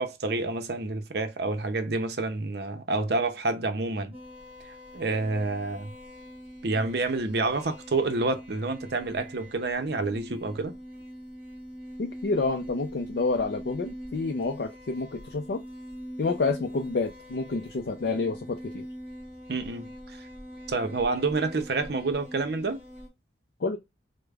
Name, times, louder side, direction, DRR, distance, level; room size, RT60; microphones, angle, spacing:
voice 1, 0.0-4.1 4.9-5.9 6.6-10.7 19.5-19.9 20.7-22.8, right 3 dB, 60° right, 0.6 m, -28 dB
sound 1, 4.1-23.1, equal, 5° right, 1.2 m, -43 dB
voice 2, 12.0-15.6 16.2-18.8 23.6-23.8, left 3 dB, 65° left, 0.4 m, -29 dB
4.9 x 2.1 x 2.3 m
head